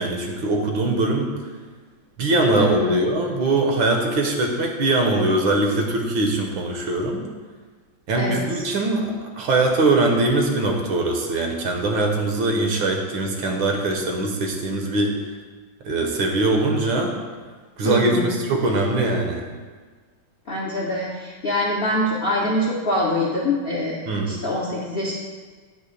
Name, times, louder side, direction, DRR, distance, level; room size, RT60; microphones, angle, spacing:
voice 1, 0.0-1.4 2.2-7.2 8.1-15.1 15.8-17.2 17.8-19.5 24.1-24.4, right 2 dB, 75° right, 2 dB, 1.7 m, -22 dB
voice 2, 2.6-3.0 8.2-8.6 17.8-18.4 20.5-24.0 24.2-25.1, left 1 dB, 50° left, -4 dB, 0.7 m, -24 dB
9.0 x 3.1 x 6.4 m, 1.5 s
omnidirectional pair, 2.2 m